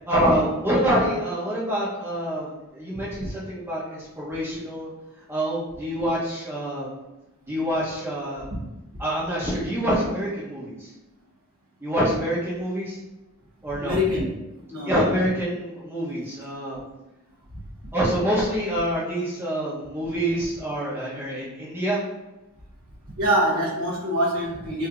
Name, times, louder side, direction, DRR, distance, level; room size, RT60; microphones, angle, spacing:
voice 1, 0.1-4.9 5.3-6.9 7.5-8.5 9.0-10.9 11.8-13.0 13.6-14.0 14.8-16.8 17.9-22.0, equal, 10° right, -7 dB, 0.8 m, -26 dB
voice 2, 13.7-14.3 14.7-15.0 17.5-17.6 23.2-24.9, equal, 85° right, -8 dB, 0.9 m, -25 dB
4.6 x 2.8 x 2.4 m, 0.98 s
head